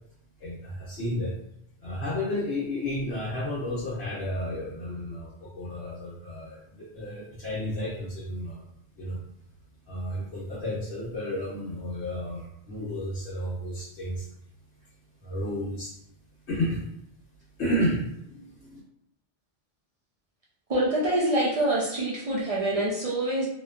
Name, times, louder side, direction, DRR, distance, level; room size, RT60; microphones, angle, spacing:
voice 1, 0.4-1.3 1.8-8.6 9.0-9.2 9.9-14.3 15.2-15.9 16.5-16.8 17.6-18.8, left 1 dB, 70° left, -8 dB, 1.0 m, -32 dB
voice 2, 20.7-23.5, right 1 dB, 60° right, -5 dB, 0.4 m, -25 dB
2.7 x 2.2 x 2.3 m, 0.74 s
omnidirectional pair, 1.2 m